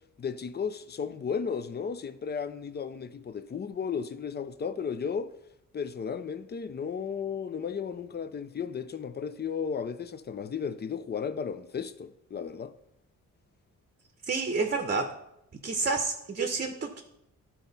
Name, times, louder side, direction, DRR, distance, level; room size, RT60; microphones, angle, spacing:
voice 1, 0.2-5.3 5.7-12.7, left 6 dB, 30° left, 0.5 m, -34 dB
voice 2, 14.3-15.2 15.6-17.0, right 4 dB, 30° right, 0.8 m, -29 dB
12.0 x 4.5 x 4.0 m
cardioid pair, 110°, 33 cm